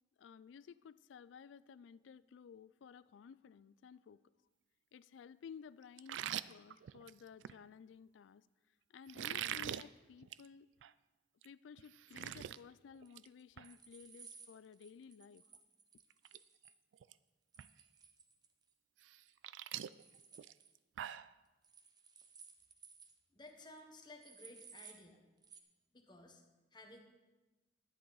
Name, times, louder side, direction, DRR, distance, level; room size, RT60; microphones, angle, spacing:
voice 1, 0.2-4.2 4.9-8.5 8.9-10.7 11.4-15.4, left 6 dB, 90° left, 18 dB, 0.3 m, -55 dB
sound 1, 6.0-7.6 9.1-9.8 10.2-10.5 10.8-10.9 11.4-11.5 11.8-12.6 12.9-13.3 13.6-13.7 15.5-15.6 16.1-16.4 16.7-17.1 17.6-17.7 19.0-21.3, right 11 dB, 85° right, 0.3 m, -43 dB
sound 2, 13.1-16.7 17.5-18.7 19.0-19.3 19.6-20.7 21.6-23.2 23.5-23.6 23.8-23.9 24.2-25.0 25.4-25.6, right 6 dB, 20° right, 0.7 m, -59 dB
voice 2, 23.3-25.2 25.9-26.4 26.7-27.0, left 2 dB, 25° left, 3 dB, 1.1 m, -56 dB
11.0 x 10.0 x 4.0 m, 1.1 s
head